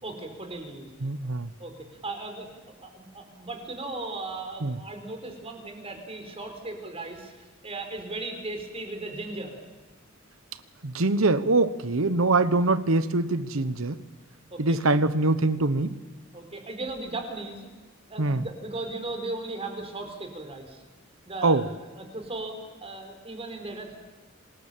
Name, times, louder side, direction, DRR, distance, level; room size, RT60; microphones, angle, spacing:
voice 1, 0.0-0.9 1.2-1.3 1.6-2.5 2.8-7.3 7.6-9.6 14.5-14.8 16.3-17.7 18.1-20.8 21.2-24.0, right 2 dB, 30° right, 5 dB, 4.4 m, -37 dB
voice 2, 1.0-1.5 4.6-4.8 10.8-14.0 14.6-16.0 18.2-18.4 21.4-21.7, right 2 dB, 85° right, 14 dB, 1.1 m, -23 dB
26.0 x 20.0 x 7.5 m, 1.3 s
head